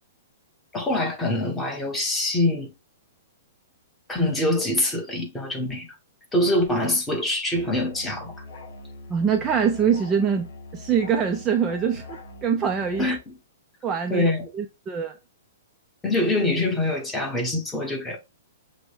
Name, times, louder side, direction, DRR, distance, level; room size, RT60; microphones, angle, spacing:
voice 1, 0.7-2.7 4.1-6.0 6.3-8.4 13.0-13.4 14.1-14.5 16.0-18.2, left 1 dB, 5° left, 1.0 m, -24 dB
Musical instrument, 7.5-13.2, left 2 dB, 60° left, 2.0 m, -42 dB
voice 2, 9.1-13.1 13.8-14.3 14.5-15.1, right 7 dB, 15° right, 0.4 m, -24 dB
6.1 x 2.1 x 3.3 m
hypercardioid pair, 165°, 0 cm